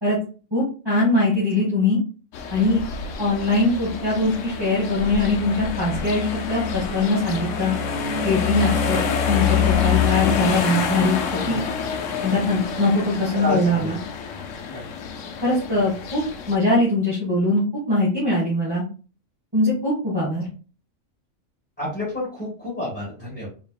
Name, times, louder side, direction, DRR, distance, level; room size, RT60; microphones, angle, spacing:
voice 1, 0.5-2.0 2.5-2.8 3.2-7.8 8.2-11.6 12.2-14.0 15.4-16.2 16.5-18.8 19.5-20.5, left 2 dB, 20° right, -7 dB, 1.2 m, -22 dB
sound 1, 2.3-16.6, left 7 dB, 75° left, 1.0 m, -26 dB
voice 2, 13.4-13.9 14.7-14.8 21.8-23.5, left 1 dB, 5° left, -10 dB, 1.6 m, -29 dB
4.1 x 3.5 x 2.3 m, 0.37 s
omnidirectional pair, 1.4 m